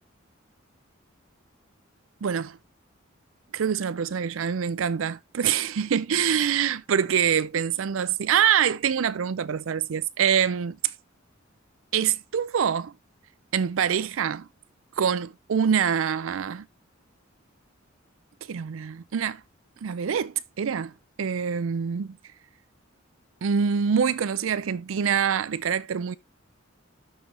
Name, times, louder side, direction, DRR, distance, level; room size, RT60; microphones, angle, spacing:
voice 1, 2.2-2.6 3.5-10.9 11.9-12.9 13.5-14.5 15.0-16.7 18.5-19.4 19.8-22.2 23.4-26.1, right 7 dB, 75° right, 0.4 m, -25 dB
12.0 x 4.9 x 2.7 m
head